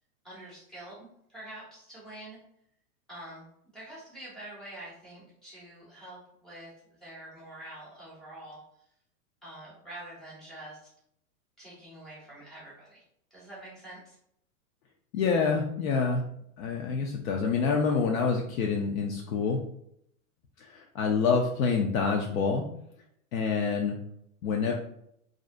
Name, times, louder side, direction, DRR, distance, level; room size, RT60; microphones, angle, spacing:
voice 1, 0.2-2.4 3.1-3.4 3.7-8.6 9.4-10.8 11.6-13.0 13.3-14.2, right 1 dB, ahead, -8 dB, 0.4 m, -46 dB
voice 2, 15.1-16.2 16.6-19.6 20.6-22.7 23.3-23.9 24.4-24.7, left 5 dB, 65° left, 1 dB, 0.5 m, -27 dB
2.5 x 2.0 x 2.4 m, 0.72 s
hypercardioid pair, 140°, 44 cm